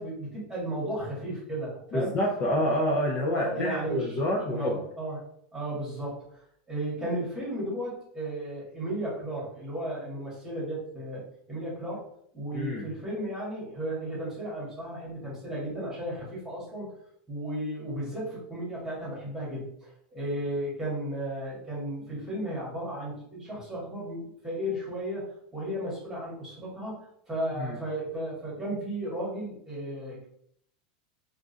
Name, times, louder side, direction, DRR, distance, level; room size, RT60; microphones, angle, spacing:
voice 1, 0.0-2.1 3.3-4.2 4.5-5.2 5.5-6.2 6.7-12.0 12.3-16.9 17.3-30.3, right 1 dB, 5° right, -6 dB, 1.6 m, -34 dB
voice 2, 1.9-4.8 12.5-12.8 27.6-27.8, left 1 dB, 30° left, -2 dB, 0.6 m, -27 dB
3.7 x 2.5 x 3.8 m, 0.67 s
supercardioid pair, 170°, 4 cm